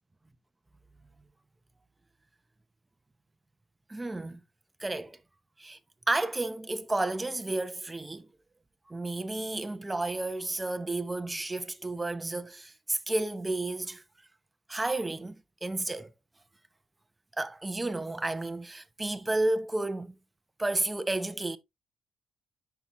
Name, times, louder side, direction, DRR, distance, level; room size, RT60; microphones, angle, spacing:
voice 1, 3.9-4.4 4.8-5.2 5.6-5.8 6.1-8.3 8.9-14.0 14.7-16.1 17.4-20.1 20.6-21.6, right 2 dB, 15° right, 0.9 m, -32 dB
9.5 x 5.9 x 3.1 m
cardioid pair, 90°, 0 cm